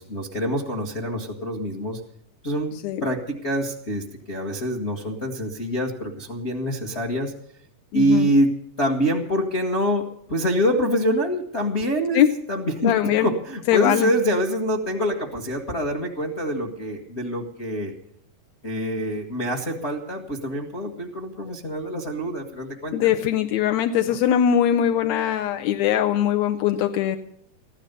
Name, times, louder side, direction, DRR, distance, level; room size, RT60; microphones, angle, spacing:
voice 1, 0.0-2.0 2.4-7.3 7.9-8.5 8.8-17.9 18.6-23.1 24.0-24.2, equal, 55° left, 2 dB, 0.7 m, -25 dB
voice 2, 7.9-8.3 12.1-12.3 12.8-13.3 13.7-14.1 22.9-27.2, left 10 dB, 75° left, 7 dB, 1.8 m, -21 dB
15.0 x 12.0 x 6.6 m, 0.73 s
omnidirectional pair, 3.8 m